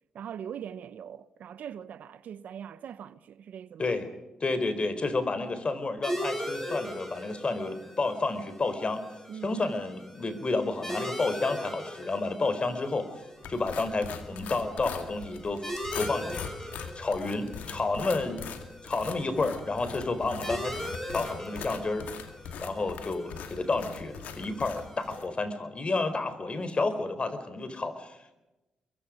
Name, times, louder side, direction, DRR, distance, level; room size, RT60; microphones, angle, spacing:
voice 1, 0.1-3.9 9.3-9.6, right 8 dB, 75° right, 1.0 m, -41 dB
voice 2, 4.4-9.0 9.4-13.1 13.5-15.7 15.9-18.4 18.8-20.7 21.1-22.0 22.6-28.3, left 3 dB, 40° left, 4.4 m, -30 dB
sound 1, 6.0-25.2, equal, 10° left, 7.1 m, -41 dB
sound 2, 13.4-25.3, left 7 dB, 85° left, 2.2 m, -42 dB
27.5 x 23.0 x 5.2 m
supercardioid pair, 50°, 3 cm